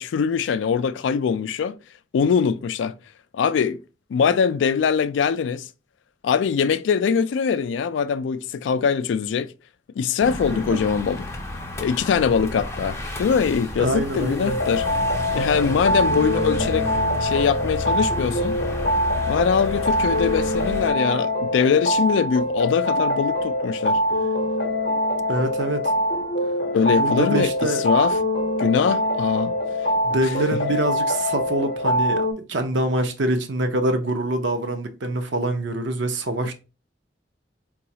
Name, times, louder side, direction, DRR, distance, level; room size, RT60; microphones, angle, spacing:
voice 1, 0.0-1.8 2.1-2.9 3.3-3.8 4.1-5.7 6.2-9.5 10.0-11.2 11.8-14.9 15.3-18.5 19.3-24.0 26.7-27.5 27.8-28.2 28.6-29.6 30.5-30.6, left 6 dB, 80° left, 0.3 m, -22 dB
sound 1, 10.2-20.9, left 1 dB, 15° left, 0.4 m, -31 dB
voice 2, 13.8-14.6 25.3-25.9 26.9-27.8 30.0-36.5, right 1 dB, 75° right, 0.6 m, -25 dB
sound 2, 14.5-32.3, left 1 dB, 55° left, 0.7 m, -24 dB
3.9 x 2.3 x 2.7 m
head